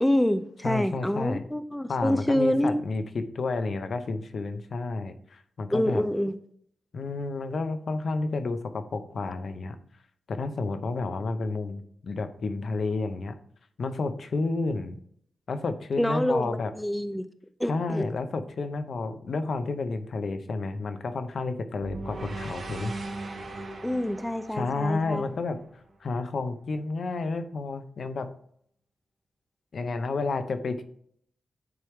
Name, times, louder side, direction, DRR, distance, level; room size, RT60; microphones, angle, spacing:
voice 1, 0.0-2.8 5.7-6.4 16.0-17.2 17.6-18.1 23.8-25.3, left 1 dB, 5° left, 11 dB, 0.4 m, -26 dB
voice 2, 0.6-1.4 1.9-6.0 6.9-9.8 10.3-13.3 13.8-15.0 15.5-16.7 17.7-22.9 24.5-25.6 26.0-28.3 29.7-30.8, left 3 dB, 60° left, 10 dB, 0.8 m, -31 dB
sound 1, 21.8-26.1, right 2 dB, 55° right, 2.0 m, -38 dB
9.6 x 4.6 x 3.5 m, 0.63 s
wide cardioid pair, 105°, 0 cm